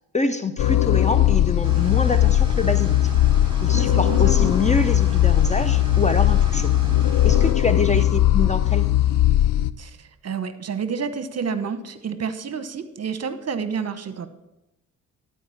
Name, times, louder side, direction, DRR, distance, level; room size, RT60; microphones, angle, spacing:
voice 1, 0.1-3.0 3.6-6.7 7.2-8.9, left 3 dB, 20° left, 11 dB, 0.7 m, -25 dB
sound 1, 0.6-9.7, left 13 dB, 60° left, 0.5 m, -19 dB
sound 2, 1.6-7.5, right 2 dB, 15° right, 2.5 m, -34 dB
voice 2, 3.7-4.5 7.9-8.0 9.8-14.3, right 6 dB, 45° right, 12 dB, 1.0 m, -29 dB
12.5 x 4.9 x 7.0 m, 0.92 s
supercardioid pair, 60°, 37 cm